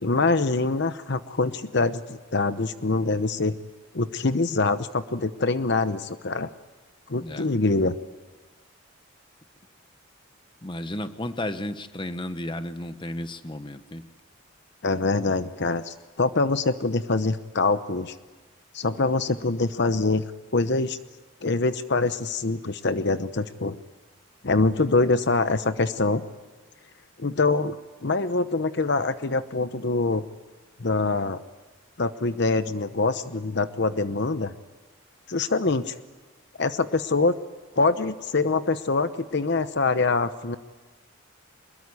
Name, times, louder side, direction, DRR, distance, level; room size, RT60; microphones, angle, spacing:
voice 1, 0.0-3.5 3.9-6.5 7.1-7.9 14.8-18.1 18.7-20.2 20.5-21.0 21.4-23.8 24.4-26.2 27.2-27.8 28.0-30.2 30.8-31.4 32.0-34.5 35.3-35.9 36.6-37.3 37.8-40.6, left 3 dB, 55° left, 11 dB, 0.9 m, -24 dB
voice 2, 10.6-14.0, left 1 dB, 25° left, 10 dB, 1.1 m, -33 dB
24.0 x 21.5 x 9.6 m, 1.3 s
head